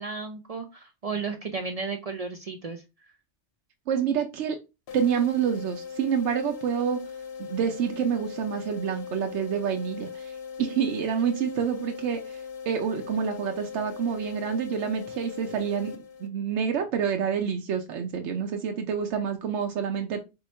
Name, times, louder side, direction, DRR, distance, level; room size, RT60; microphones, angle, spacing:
voice 1, 0.0-2.8, right 4 dB, 45° right, 5 dB, 0.5 m, -33 dB
voice 2, 3.9-4.6 4.9-7.0 7.4-20.2, right 7 dB, 90° right, 4 dB, 0.9 m, -28 dB
sound 1, 4.9-16.6, left 6 dB, 75° left, 0.9 m, -40 dB
3.8 x 2.8 x 4.3 m, 0.26 s
omnidirectional pair, 1.1 m